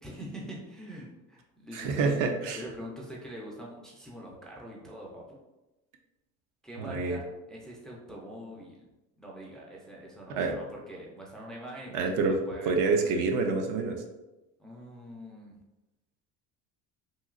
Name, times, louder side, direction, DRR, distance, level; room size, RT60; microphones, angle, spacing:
voice 1, 0.0-2.2 2.6-5.4 6.6-8.9 9.2-12.9 14.6-15.6, equal, ahead, -3 dB, 0.3 m, -44 dB
voice 2, 1.7-2.6 6.8-7.2 10.3-10.6 11.9-12.3 12.7-14.0, right 4 dB, 65° right, 4 dB, 0.5 m, -27 dB
3.0 x 2.7 x 2.4 m, 1.0 s
cardioid pair, 130°, 34 cm